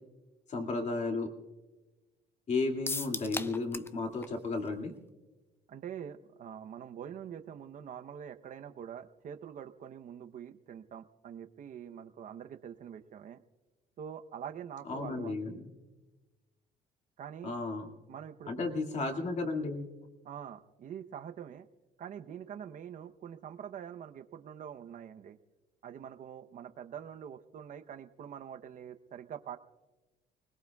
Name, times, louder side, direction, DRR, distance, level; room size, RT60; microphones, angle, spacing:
voice 1, 0.5-1.3 2.5-4.9 14.9-15.7 17.4-17.9 18.5-19.9, left 3 dB, 45° left, 3 dB, 2.3 m, -33 dB
sound 1, 2.9-4.0 4.2-4.3 4.7-4.8, left 3 dB, 15° left, 0.5 m, -36 dB
voice 2, 5.7-13.4 14.0-15.4 17.2-17.5 18.1-18.7 20.2-21.7 22.0-25.4 25.8-29.6, right 8 dB, 50° right, 8 dB, 0.9 m, -45 dB
29.5 x 20.0 x 2.4 m, 1.2 s
cardioid pair, 110°, 17 cm